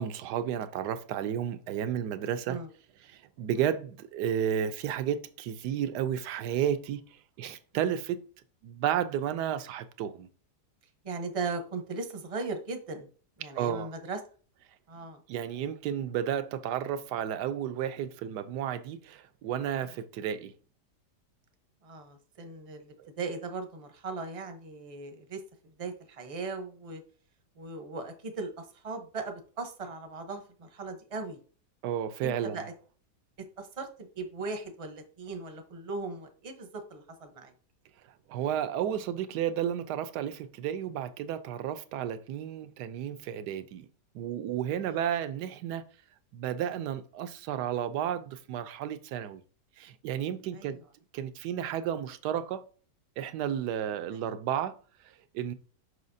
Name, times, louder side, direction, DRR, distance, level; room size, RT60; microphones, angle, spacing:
voice 1, 0.0-2.6 3.1-8.2 8.6-10.3 13.4-13.9 15.3-20.5 23.0-23.1 31.8-32.6 38.3-43.9 44.1-45.8 46.3-49.4 49.8-50.8 51.1-52.6 53.2-54.8 55.0-55.5, right 9 dB, 80° right, 1.2 m, -32 dB
voice 2, 11.0-13.1 13.4-14.2 14.9-15.2 21.8-27.0 27.6-31.4 32.2-32.7 33.6-37.5 50.5-50.8 54.1-54.2, right 3 dB, 30° right, 0.6 m, -38 dB
6.3 x 5.6 x 2.6 m
omnidirectional pair, 1.8 m